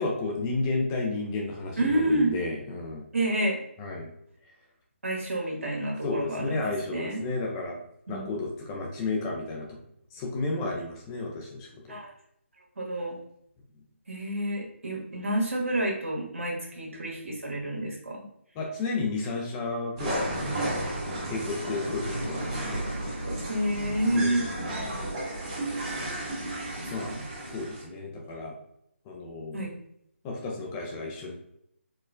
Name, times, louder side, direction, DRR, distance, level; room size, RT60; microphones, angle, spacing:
voice 1, 0.0-3.1 3.8-4.1 6.0-7.8 8.1-9.8 10.1-12.0 18.5-20.7 21.2-23.1 24.1-24.7 26.5-26.6 26.9-27.1 27.5-28.5 29.1-29.7 30.2-31.3, left 3 dB, 15° left, -1 dB, 0.4 m, -32 dB
voice 2, 1.8-2.3 3.1-3.6 5.0-7.2 8.1-8.2 11.9-12.1 12.8-13.2 14.1-18.2 20.5-20.7 23.5-24.4 26.7-27.2 29.5-29.7, right 1 dB, 80° right, -3 dB, 1.2 m, -29 dB
sound 1, 20.0-27.8, right 1 dB, 25° right, 0.9 m, -33 dB
4.3 x 2.0 x 2.4 m, 0.73 s
figure-of-eight pair, 160°, 7 cm